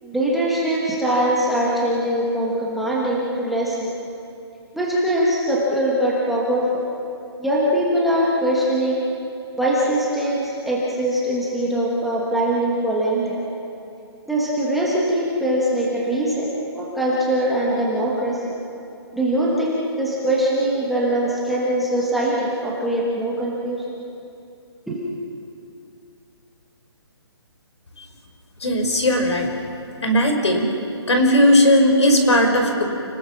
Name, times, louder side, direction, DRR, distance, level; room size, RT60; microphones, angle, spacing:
voice 1, 0.0-3.9 4.7-6.8 7.4-9.0 9.6-13.4 14.3-16.5 16.7-18.4 19.1-24.0 24.9-25.0, right 1 dB, ahead, -6 dB, 1.3 m, -22 dB
voice 2, 28.6-29.5 30.0-30.7 31.1-32.8, equal, 85° left, 4 dB, 4.9 m, -17 dB
29.0 x 20.0 x 6.0 m, 2.6 s
hypercardioid pair, 180°, 14 cm